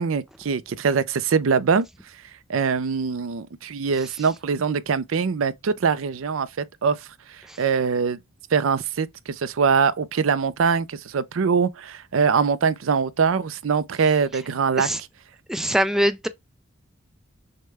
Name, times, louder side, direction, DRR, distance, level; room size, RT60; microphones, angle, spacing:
voice 1, 0.0-1.9 2.5-6.5 6.8-7.0 7.3-8.2 8.5-14.9, right 5 dB, 70° right, 0.5 m, -23 dB
voice 2, 15.5-16.3, equal, ahead, 0.3 m, -22 dB
6.4 x 2.2 x 3.3 m
head